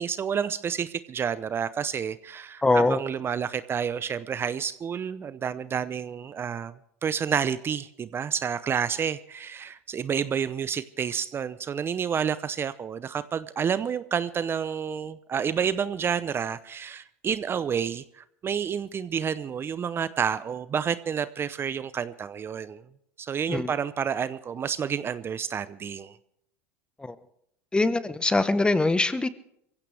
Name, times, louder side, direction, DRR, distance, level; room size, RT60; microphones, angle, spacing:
voice 1, 0.0-6.8 7.0-22.8 23.2-26.2, right 7 dB, 30° right, 15 dB, 0.7 m, -29 dB
voice 2, 2.6-3.0 23.5-23.7 27.0-27.1 27.7-29.3, left 2 dB, 10° left, 13 dB, 1.2 m, -23 dB
23.5 x 16.0 x 3.5 m, 0.75 s
hypercardioid pair, 85°, 8 cm